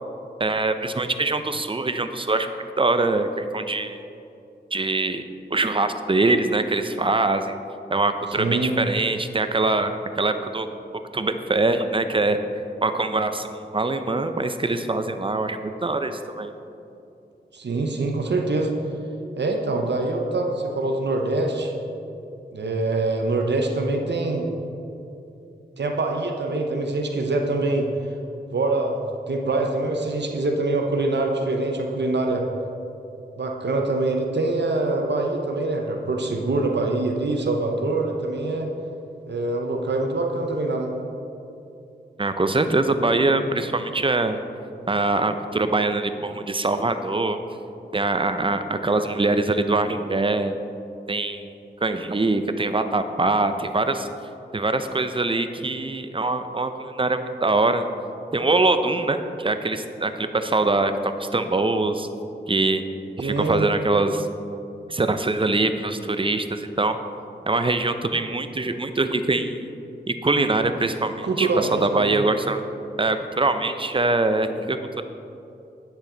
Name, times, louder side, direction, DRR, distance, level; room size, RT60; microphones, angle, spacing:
voice 1, 0.4-2.5 2.8-4.0 4.7-5.2 5.5-7.5 7.9-10.7 11.1-12.4 12.8-16.5 42.2-44.4 44.9-47.4 47.9-50.6 51.1-51.5 51.8-54.1 54.5-57.9 58.3-62.1 62.5-62.8 63.2-64.3 64.9-66.9 67.5-69.6 70.1-72.6 73.0-75.0, right 2 dB, 30° right, 9 dB, 0.6 m, -23 dB
voice 2, 8.4-8.7 17.5-18.7 19.4-21.7 22.5-24.5 25.8-27.9 28.5-29.0 29.3-32.5 33.4-38.7 39.3-40.9 63.2-63.6 71.2-72.2, right 2 dB, 70° right, 2 dB, 0.8 m, -24 dB
9.1 x 7.1 x 3.9 m, 2.7 s
cardioid pair, 50°, 19 cm